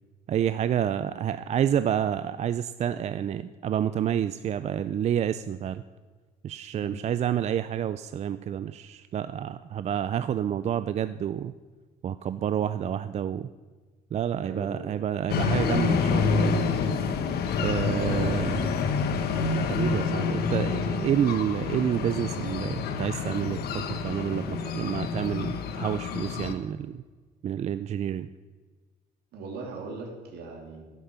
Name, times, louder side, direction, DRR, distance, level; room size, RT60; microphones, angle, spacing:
voice 1, 0.3-5.8 6.4-11.5 12.0-13.5 14.1-16.6 17.6-18.7 19.6-23.6 23.9-27.0 27.4-28.3, right 9 dB, 40° right, 13 dB, 0.4 m, -29 dB
voice 2, 14.4-14.8 17.6-19.0 29.3-30.8, right 4 dB, 70° right, 2 dB, 3.1 m, -39 dB
sound 1, 15.3-26.5, left 5 dB, 70° left, 1.3 m, -28 dB
10.5 x 10.0 x 6.9 m, 1.4 s
cardioid pair, 110°, 17 cm